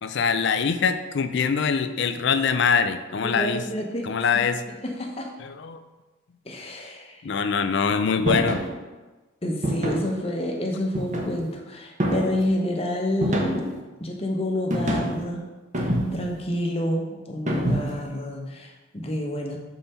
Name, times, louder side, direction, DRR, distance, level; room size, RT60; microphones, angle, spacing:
voice 1, 0.0-3.6 4.0-4.6 5.4-5.8 7.2-8.6, left 6 dB, 60° left, 10 dB, 0.4 m, -23 dB
voice 2, 3.2-5.3 6.4-7.4 9.4-15.5 15.8-19.6, left 1 dB, 30° left, 0 dB, 0.9 m, -29 dB
sound 1, 8.3-8.7 9.6-10.1 10.9-11.5 12.0-12.5 13.2-13.8 14.7-15.2 15.7-16.4 17.5-18.1, equal, 35° right, 0.9 m, -26 dB
5.5 x 4.3 x 5.5 m, 1.2 s
head